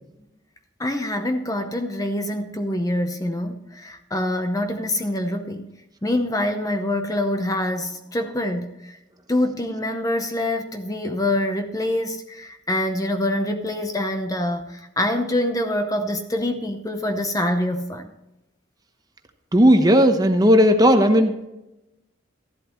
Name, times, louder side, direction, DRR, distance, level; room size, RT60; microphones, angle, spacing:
voice 1, 0.8-5.7 6.0-9.0 9.3-18.1, left 1 dB, 20° left, 6 dB, 0.7 m, -25 dB
voice 2, 19.5-21.3, equal, 20° right, 6 dB, 0.9 m, -15 dB
14.0 x 11.5 x 3.1 m, 0.92 s
head